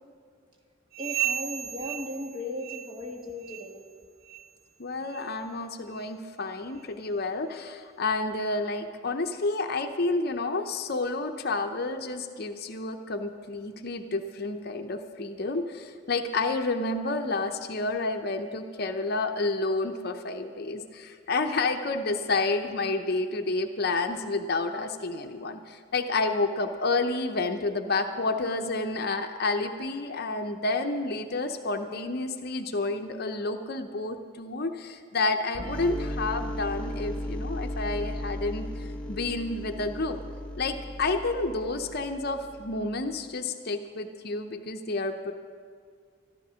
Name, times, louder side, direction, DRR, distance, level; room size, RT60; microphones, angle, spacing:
sound 1, 0.9-3.1 3.4-3.8 4.2-4.5 5.1-5.3 5.9-6.0 6.8-6.9, right 12 dB, 45° right, 0.4 m, -34 dB
voice 1, 1.0-3.8, left 1 dB, 25° right, 0 dB, 1.7 m, -37 dB
voice 2, 4.8-38.7 39.1-40.2 40.6-45.3, left 3 dB, 50° left, 6 dB, 0.7 m, -30 dB
sound 2, 35.5-43.1, left 1 dB, 5° left, 0.9 m, -36 dB
13.0 x 11.5 x 6.2 m, 2.1 s
head